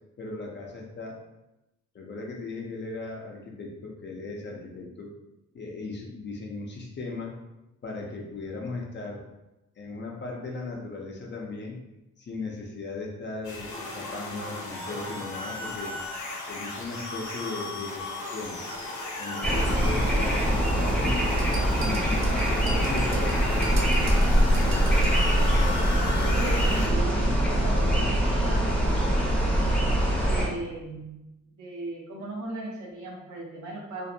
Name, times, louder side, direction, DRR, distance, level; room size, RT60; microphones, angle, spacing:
voice 1, 0.2-1.2 1.9-5.1 5.5-7.3 7.8-9.2 9.8-11.8 12.2-15.9 16.5-18.6 19.2-21.2 21.8-25.5 26.1-26.5, left 3 dB, 35° left, -1 dB, 0.6 m, -37 dB
sound 1, 13.4-26.9, left 2 dB, 75° left, 0.7 m, -36 dB
sound 2, 19.4-30.5, right 1 dB, 5° left, 0.7 m, -23 dB
sound 3, 21.4-25.2, right 3 dB, 45° right, 0.5 m, -41 dB
voice 2, 26.2-29.1 30.2-31.2 31.5-34.1, right 2 dB, 75° right, -3 dB, 0.9 m, -37 dB
2.5 x 2.1 x 2.6 m, 0.95 s
cardioid pair, 90°, 30 cm